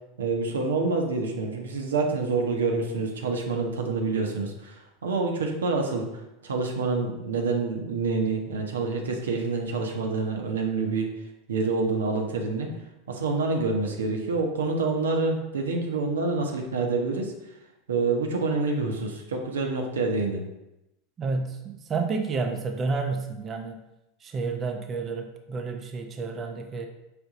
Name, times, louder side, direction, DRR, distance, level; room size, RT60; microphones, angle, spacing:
voice 1, 0.2-11.1 11.5-12.7 13.1-17.3 17.9-20.4, right 3 dB, 75° right, 2 dB, 0.6 m, -27 dB
voice 2, 21.2-23.8 24.2-26.9, right 4 dB, 30° right, 4 dB, 0.4 m, -30 dB
5.0 x 2.6 x 3.7 m, 0.92 s
figure-of-eight pair, 85°, 0 cm